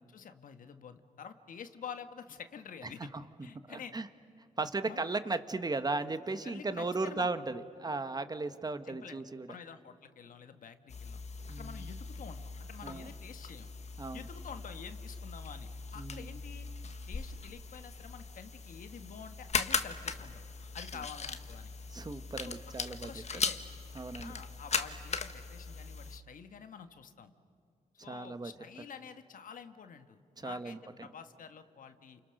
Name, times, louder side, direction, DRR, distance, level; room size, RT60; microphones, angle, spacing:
voice 1, 0.1-3.0 3.4-3.9 4.6-5.2 6.4-7.5 8.8-9.2 9.5-11.2 11.5-13.7 14.1-16.7 17.1-20.4 20.7-21.7 22.4-22.6 22.9-23.6 24.2-27.3 27.9-32.2, left 7 dB, 70° left, 8 dB, 1.5 m, -48 dB
voice 2, 3.7-4.1 4.6-9.5 11.5-11.8 12.8-13.1 14.0-14.3 15.9-16.3 20.9-21.0 21.9-23.2 23.9-24.3 28.0-28.5 30.4-31.1, right 3 dB, 30° right, 10 dB, 1.4 m, -36 dB
sound 1, 10.9-26.2, left 5 dB, 50° left, 1.5 m, -39 dB
29.0 x 29.0 x 6.6 m, 2.5 s
cardioid pair, 75°, 14 cm